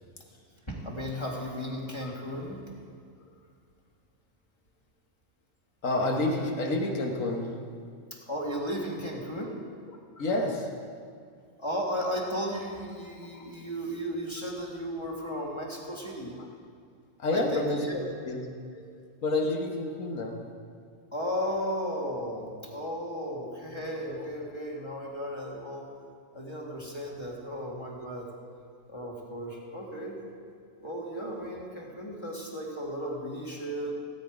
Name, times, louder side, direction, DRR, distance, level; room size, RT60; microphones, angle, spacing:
voice 1, 0.7-2.6 8.1-9.6 11.6-16.4 17.3-18.0 21.1-25.9 26.3-28.3 28.9-30.2 30.8-33.9, equal, 20° left, -2 dB, 2.0 m, -35 dB
voice 2, 5.8-7.8 10.2-11.0 13.3-13.4 16.4-16.5 17.2-18.0 18.2-18.9 19.2-20.5 24.2-24.3 25.4-25.5 26.5-26.6, left 2 dB, 75° left, 2 dB, 1.7 m, -30 dB
17.0 x 9.0 x 5.0 m, 2.2 s
omnidirectional pair, 1.4 m